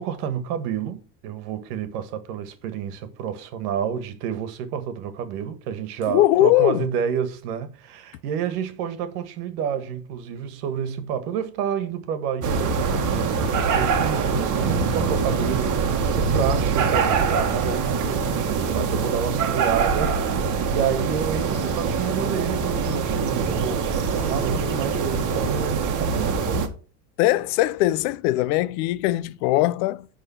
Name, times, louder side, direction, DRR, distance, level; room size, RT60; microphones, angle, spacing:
voice 1, 0.0-26.7, right 8 dB, 70° right, 1.6 m, -29 dB
voice 2, 6.1-6.9 27.2-30.1, left 16 dB, 65° left, 0.7 m, -20 dB
sound 1, 12.4-26.7, right 5 dB, 40° right, 1.6 m, -24 dB
9.8 x 3.7 x 5.8 m
supercardioid pair, 105°, 49 cm